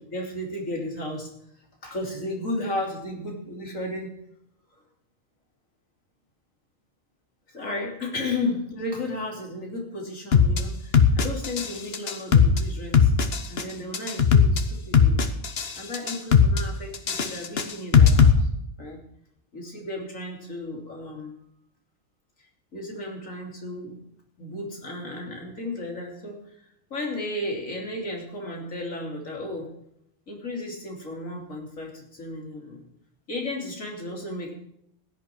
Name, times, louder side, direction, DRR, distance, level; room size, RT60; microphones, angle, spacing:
voice 1, 0.1-1.3 1.8-4.1 7.5-13.1 13.5-15.3 15.7-18.5 18.8-19.0 19.5-21.3 22.4-24.0 24.4-26.6 26.9-29.7 30.3-32.9 33.3-34.5, left 1 dB, 85° left, 0 dB, 3.4 m, -34 dB
sound 1, 10.3-10.6 10.9-11.7 11.9-12.6 12.9-13.6 13.9-14.6 14.9-15.7 15.9-16.6 16.9-18.3, left 6 dB, 55° left, 1.3 m, -17 dB
16.0 x 10.5 x 4.6 m, 0.75 s
omnidirectional pair, 1.3 m